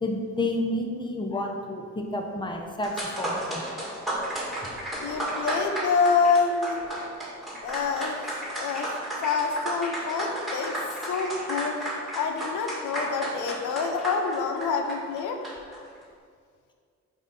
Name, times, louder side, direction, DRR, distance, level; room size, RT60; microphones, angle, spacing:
voice 1, 0.0-3.7 4.6-4.7, left 1 dB, 15° left, 2 dB, 0.8 m, -30 dB
sound 1, 2.5-2.6 2.8-15.8, right 1 dB, ahead, 1.7 m, -33 dB
voice 2, 5.0-6.8 7.6-8.9 9.2-10.7 11.1-11.8 12.2-15.5, left 5 dB, 80° left, 4 dB, 0.7 m, -27 dB
5.8 x 4.1 x 5.4 m, 2.1 s
cardioid pair, 90°, 30 cm